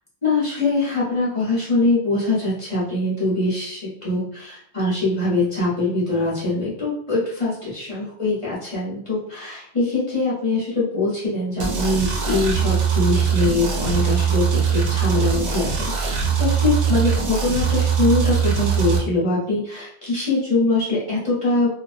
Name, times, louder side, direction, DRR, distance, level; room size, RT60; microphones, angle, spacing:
voice 1, 0.2-21.7, left 2 dB, 30° left, -8 dB, 0.9 m, -23 dB
sound 1, 11.6-19.0, right 7 dB, 90° right, 0.9 m, -21 dB
2.4 x 2.1 x 2.4 m, 0.64 s
omnidirectional pair, 1.2 m